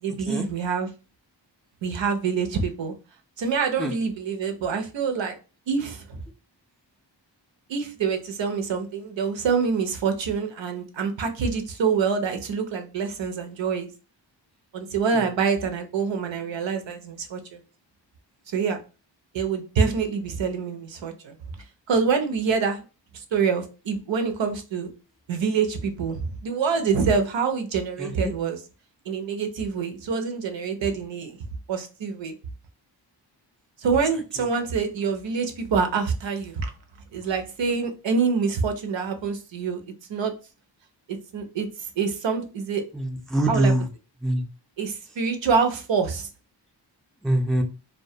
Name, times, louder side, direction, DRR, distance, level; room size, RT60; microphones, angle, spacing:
voice 1, 0.0-0.9 1.8-2.9 3.4-5.4 5.7-6.2 7.7-13.9 14.7-17.6 18.5-18.8 19.3-21.4 21.9-22.8 23.1-24.9 25.3-28.6 29.1-31.4 31.7-32.3 33.8-36.7 37.1-39.8 40.1-40.3 41.1-41.7 42.0-42.8 43.5-43.7 44.8-46.3, right 5 dB, 75° right, 0.6 m, -26 dB
voice 2, 28.0-28.3 42.9-43.8 44.2-44.4 47.2-47.6, right 1 dB, ahead, 0.4 m, -23 dB
2.2 x 2.1 x 2.7 m
wide cardioid pair, 65°, 45 cm